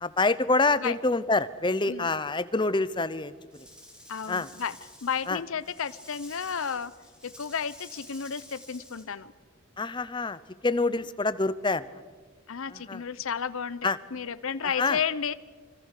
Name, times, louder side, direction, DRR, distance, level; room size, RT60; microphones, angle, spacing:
voice 1, 0.0-3.3 4.3-4.5 5.3-5.4 9.8-10.4 10.6-11.8 12.9-13.0 13.8-14.0 14.8-15.0, left 3 dB, 20° left, 15 dB, 0.7 m, -26 dB
Rattle / Rattle (instrument), 3.5-9.1, left 1 dB, 5° right, 3.9 m, -50 dB
voice 2, 4.1-6.9 7.2-9.3 10.8-11.1 12.5-15.3, left 7 dB, 80° left, 14 dB, 0.7 m, -32 dB
25.0 x 25.0 x 6.6 m, 1.4 s
head